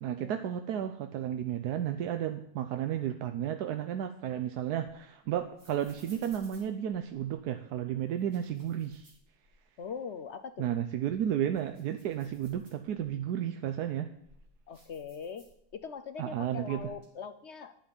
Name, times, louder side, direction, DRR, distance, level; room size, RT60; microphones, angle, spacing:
voice 1, 0.0-9.1 10.6-14.1 16.2-16.9, right 10 dB, 90° right, 7 dB, 1.3 m, -33 dB
sound 1, 4.0-7.5 8.1-9.9 10.2-10.3 10.9-13.2 13.8-16.0 16.3-17.1, equal, 45° right, 3.7 m, -61 dB
voice 2, 9.8-10.7 14.7-17.7, left 6 dB, 60° left, 10 dB, 0.8 m, -42 dB
11.0 x 7.0 x 9.5 m, 0.75 s
omnidirectional pair, 1.6 m